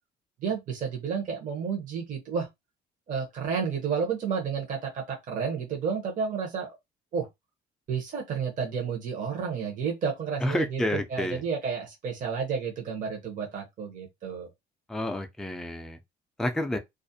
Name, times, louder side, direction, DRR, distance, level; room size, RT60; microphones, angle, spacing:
voice 1, 0.4-2.5 3.1-6.7 7.1-7.3 7.9-10.8 11.1-14.5, right 6 dB, 50° right, 0.8 m, -31 dB
voice 2, 10.4-11.4 14.9-16.0 16.4-16.8, left 1 dB, 5° left, 0.3 m, -29 dB
2.4 x 2.0 x 2.6 m
cardioid pair, 110°, 17 cm